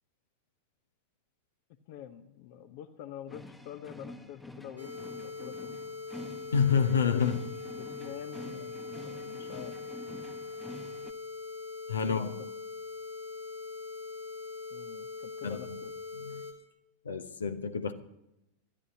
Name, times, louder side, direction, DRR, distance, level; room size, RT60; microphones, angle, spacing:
voice 1, 1.9-5.8 7.8-9.8 12.0-12.5 14.7-15.9, left 10 dB, 45° left, 0.8 m, -46 dB
sound 1, 3.3-11.1, left 1 dB, 5° left, 1.2 m, -47 dB
sound 2, 4.8-16.5, left 4 dB, 90° left, 2.8 m, -42 dB
voice 2, 6.5-7.5 11.9-12.3 15.4-15.7 16.2-16.4 17.0-17.9, left 6 dB, 70° left, 1.0 m, -28 dB
25.0 x 12.5 x 2.8 m
figure-of-eight pair, 90°, 0 cm